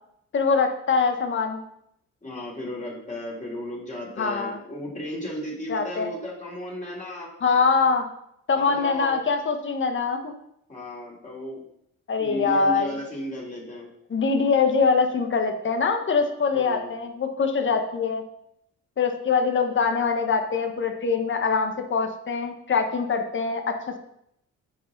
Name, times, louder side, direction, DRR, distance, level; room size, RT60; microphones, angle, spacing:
voice 1, 0.3-1.6 4.2-4.6 5.7-6.1 7.4-8.0 8.5-10.3 12.1-13.0 14.1-18.2 19.0-24.0, left 5 dB, 40° left, 5 dB, 1.2 m, -23 dB
voice 2, 2.2-7.3 8.5-9.2 10.7-11.6 12.2-13.9 16.5-16.9, left 1 dB, 25° left, -4 dB, 3.5 m, -35 dB
10.5 x 5.0 x 4.0 m, 0.77 s
cardioid pair, 90°, 30 cm